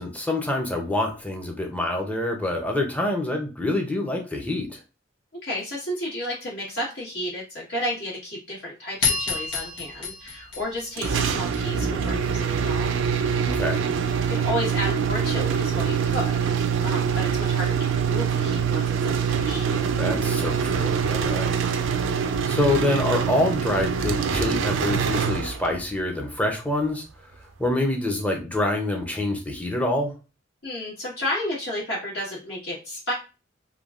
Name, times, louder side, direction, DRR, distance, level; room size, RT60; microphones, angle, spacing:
voice 1, 0.0-4.8 13.4-13.8 20.0-21.6 22.4-27.0 27.6-30.1, left 1 dB, 10° left, 2 dB, 0.6 m, -26 dB
voice 2, 5.4-13.4 14.3-19.7 30.6-33.1, left 1 dB, 70° left, -6 dB, 1.3 m, -32 dB
sound 1, 9.0-11.6, left 4 dB, 90° left, 0.9 m, -28 dB
sound 2, 11.0-25.9, right 6 dB, 75° right, 0.4 m, -24 dB
3.3 x 2.2 x 2.4 m, 0.31 s
head